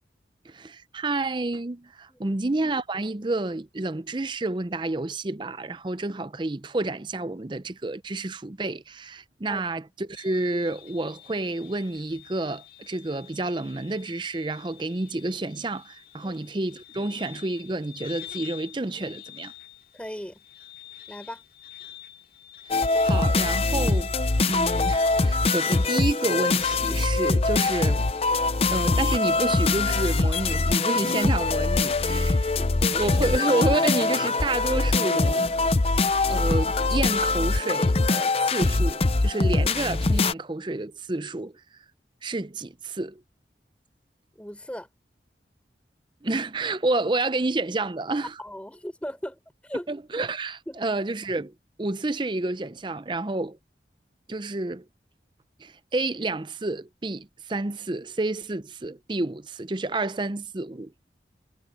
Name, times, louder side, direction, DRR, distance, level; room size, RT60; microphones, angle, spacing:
voice 1, 0.5-19.5 23.0-24.2 24.5-28.1 28.7-32.5 32.8-35.5 36.3-41.5 42.2-43.2 46.2-48.4 49.9-51.5 51.8-53.6 54.3-54.8 55.6-60.9, right 2 dB, 25° right, 0.6 m, -29 dB
sound 1, 10.2-26.9, left 13 dB, 50° left, 2.5 m, -47 dB
voice 2, 19.9-20.4 21.1-21.4 32.6-32.8 44.4-44.9 48.4-49.9 50.7-50.8, equal, 5° left, 3.8 m, -37 dB
sound 2, 22.7-40.3, left 3 dB, 35° left, 0.6 m, -23 dB
head